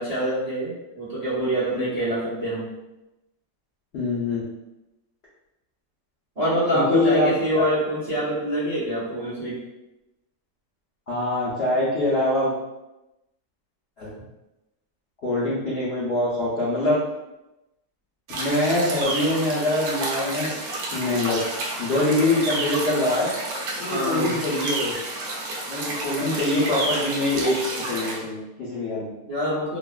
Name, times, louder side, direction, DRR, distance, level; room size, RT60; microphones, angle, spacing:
voice 1, 0.0-2.7 6.4-9.6 23.9-24.3 29.2-29.8, right 1 dB, 45° right, -9 dB, 0.4 m, -25 dB
voice 2, 3.9-4.4 6.7-7.3 7.6-7.7 11.1-12.5 14.0-14.1 15.2-17.0 18.3-20.5 20.9-21.4 21.8-23.3 23.8-24.9 25.7-27.5 27.8-29.1, left 2 dB, 70° left, -9 dB, 0.6 m, -24 dB
sound 1, 18.3-28.2, right 2 dB, 65° right, 1.0 m, -30 dB
3.1 x 2.1 x 2.3 m, 0.97 s
omnidirectional pair, 1.9 m